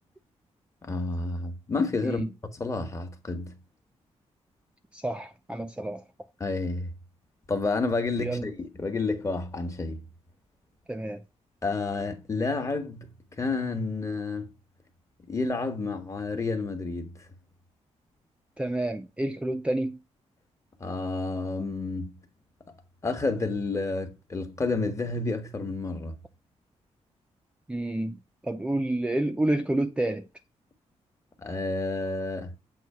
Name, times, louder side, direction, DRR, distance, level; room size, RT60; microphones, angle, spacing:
voice 1, 0.8-2.2 2.5-3.6 6.4-6.9 7.5-10.0 11.6-14.5 15.3-17.1 20.8-22.1 23.0-26.1 31.4-32.5, left 3 dB, 25° left, 1.2 m, -30 dB
voice 2, 4.9-6.0 8.2-8.5 10.9-11.2 18.6-20.0 27.7-30.2, right 1 dB, 10° right, 0.5 m, -29 dB
7.7 x 2.8 x 5.5 m
wide cardioid pair, 125°, 12 cm